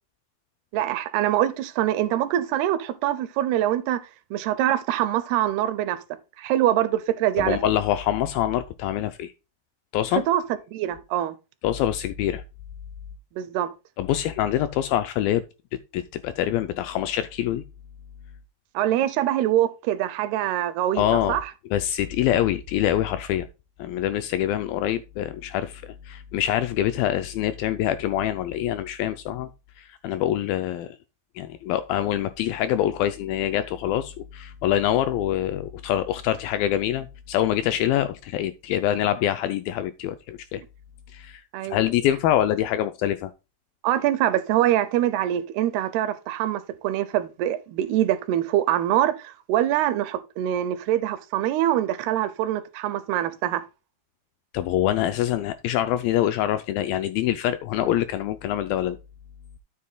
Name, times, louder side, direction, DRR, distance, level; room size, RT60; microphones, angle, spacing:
voice 1, 0.7-4.0 4.3-6.0 6.4-7.6 10.3-10.4 10.7-11.4 13.4-13.7 18.7-21.5 41.5-41.9 43.8-53.6, right 12 dB, 80° right, 2.7 m, -24 dB
voice 2, 7.4-9.3 9.9-10.2 11.6-12.4 14.0-15.4 15.9-17.6 21.0-21.4 21.7-23.5 23.8-29.5 29.8-31.0 31.4-40.6 41.1-43.3 54.5-59.0, left 12 dB, 80° left, 2.1 m, -25 dB
12.5 x 7.5 x 2.3 m
omnidirectional pair, 4.6 m